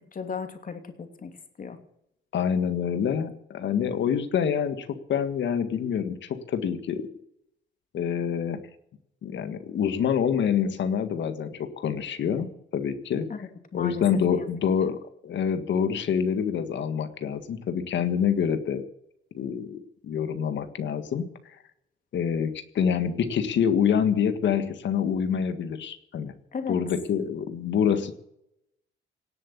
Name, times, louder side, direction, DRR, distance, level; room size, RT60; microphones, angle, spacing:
voice 1, 0.1-1.3 1.6-1.8 13.3-14.0 26.5-26.8, left 6 dB, 45° left, 6 dB, 2.9 m, -35 dB
voice 2, 2.3-7.0 7.9-8.6 9.2-12.5 12.7-13.3 13.7-15.0 15.2-18.8 19.3-21.5 22.1-26.3 26.7-28.1, left 7 dB, 65° left, 10 dB, 1.8 m, -26 dB
18.5 x 7.8 x 8.4 m, 0.78 s
cardioid pair, 90°, 20 cm